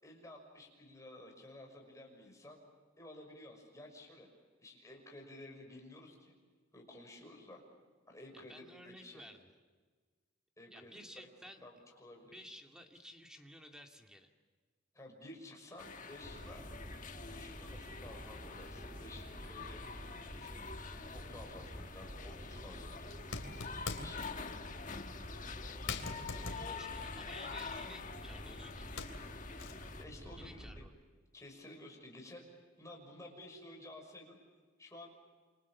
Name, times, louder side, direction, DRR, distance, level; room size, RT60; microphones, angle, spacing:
voice 1, 0.0-2.6 3.0-4.3 4.6-6.3 6.7-7.6 8.1-9.3 10.6-11.0 11.6-12.5 14.9-16.7 17.3-19.8 20.3-20.7 21.1-23.0 23.9-24.7 26.4-26.8 30.0-30.9 31.3-32.5 32.8-34.4 34.8-35.1, left 1 dB, 15° left, 1 dB, 5.9 m, -53 dB
voice 2, 8.5-9.4 10.7-11.6 12.2-14.3 26.5-28.9 30.4-30.9, equal, 5° right, 3 dB, 2.3 m, -54 dB
sound 1, 15.8-30.0, left 5 dB, 40° left, 1.5 m, -47 dB
sound 2, 16.2-30.9, equal, 20° right, 1.8 m, -49 dB
sound 3, 22.1-22.3 23.0-24.3 24.9-25.0 25.4-25.5 25.9-28.4 28.7-30.0, left 4 dB, 70° left, 3.3 m, -43 dB
28.5 x 26.0 x 7.3 m, 1.5 s
head